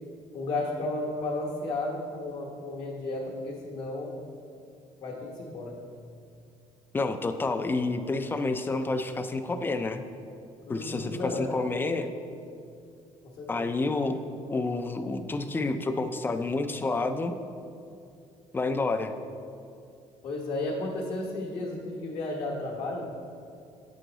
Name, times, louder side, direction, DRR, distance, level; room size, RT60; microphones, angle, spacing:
voice 1, 0.3-4.1 5.0-5.9 10.7-11.6 13.4-13.7 20.2-23.1, left 2 dB, 60° left, -3 dB, 1.2 m, -33 dB
voice 2, 6.9-10.0 10.7-12.1 13.5-14.2 14.5-17.4 18.5-19.1, left 3 dB, 15° left, 8 dB, 0.4 m, -29 dB
7.7 x 6.2 x 3.9 m, 2.5 s
cardioid pair, 120°, 12 cm